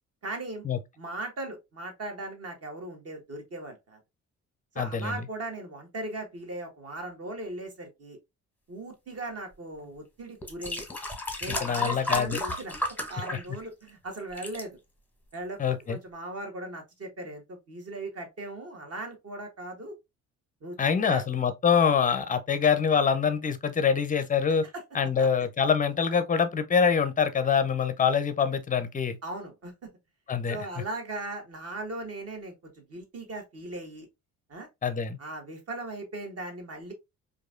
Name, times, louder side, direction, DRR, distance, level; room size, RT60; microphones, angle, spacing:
voice 1, 0.2-0.6 1.0-4.0 4.7-8.2 8.7-10.8 11.4-12.7 13.0-14.8 15.3-19.9 20.6-21.2 24.7-24.8 25.2-25.3 29.2-29.7 30.5-34.1 34.5-34.7 35.2-36.9, right 2 dB, 35° right, 1.4 m, -38 dB
voice 2, 4.8-5.2 11.5-12.4 15.6-16.0 20.8-24.7 24.9-29.2 30.3-30.6 34.8-35.2, left 6 dB, 20° left, 0.6 m, -25 dB
sound 1, 9.8-9.9 10.4-13.9 14.2-14.6 15.3-15.4, left 2 dB, 5° left, 1.0 m, -33 dB
4.7 x 2.5 x 2.5 m
figure-of-eight pair, 45°, 43 cm